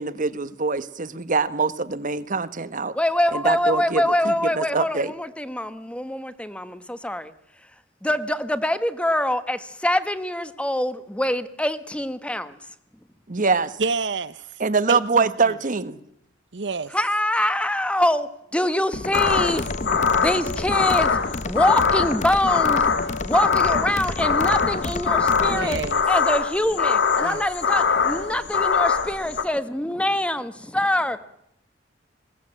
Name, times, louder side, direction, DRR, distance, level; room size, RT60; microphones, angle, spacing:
voice 1, 0.0-2.9 3.3-5.1 13.3-13.7 14.6-16.0, right 4 dB, 45° right, 1.2 m, -24 dB
voice 2, 2.9-7.3 8.0-12.6 16.9-19.7 20.2-21.1 21.4-22.8 23.3-25.8 26.1-31.2, left 1 dB, 5° left, 1.2 m, -24 dB
voice 3, 13.8-14.5 14.9-15.6 16.5-16.9 19.3-19.4 25.4-26.0 27.2-27.4, right 4 dB, 70° right, 0.9 m, -29 dB
sound 1, 18.9-25.9, left 2 dB, 40° left, 1.0 m, -31 dB
sound 2, 19.1-29.4, left 5 dB, 65° left, 1.6 m, -23 dB
21.5 x 17.5 x 8.8 m
head